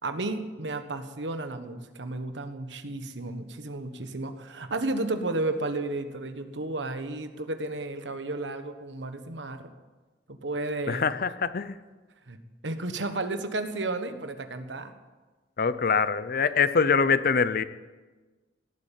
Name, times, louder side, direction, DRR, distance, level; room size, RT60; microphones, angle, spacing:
voice 1, 0.0-9.7 10.3-11.1 12.3-12.4 12.6-14.9, right 2 dB, 85° right, 9 dB, 1.3 m, -33 dB
voice 2, 10.9-11.8 15.6-17.6, left 5 dB, 55° left, 15 dB, 0.6 m, -24 dB
18.0 x 8.3 x 9.1 m, 1.3 s
head